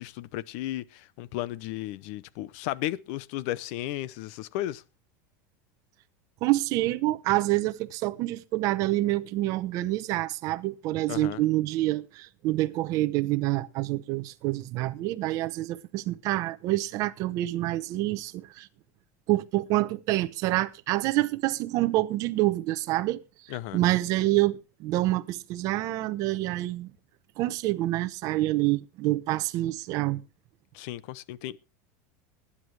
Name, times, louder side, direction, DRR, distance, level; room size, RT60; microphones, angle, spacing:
voice 1, 0.0-4.8 11.1-11.4 23.5-23.8 30.7-31.6, left 15 dB, 50° left, 0.7 m, -34 dB
voice 2, 6.4-18.7 19.3-26.9 27.4-30.2, right 17 dB, 40° right, 0.8 m, -27 dB
20.0 x 9.8 x 3.2 m
supercardioid pair, 170°, 9 cm